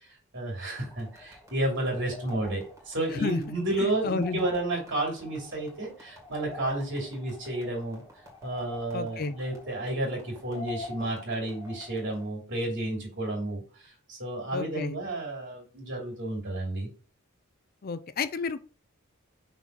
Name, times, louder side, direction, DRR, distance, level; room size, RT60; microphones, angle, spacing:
voice 1, 0.3-8.0 8.4-13.6 14.1-16.9, right 1 dB, 60° right, 3.0 m, -31 dB
sound 1, 0.7-12.3, left 2 dB, 15° right, 2.2 m, -47 dB
voice 2, 3.1-4.5 8.9-9.3 14.5-14.9 17.8-18.6, left 4 dB, 45° left, 0.5 m, -32 dB
5.9 x 4.1 x 4.6 m
head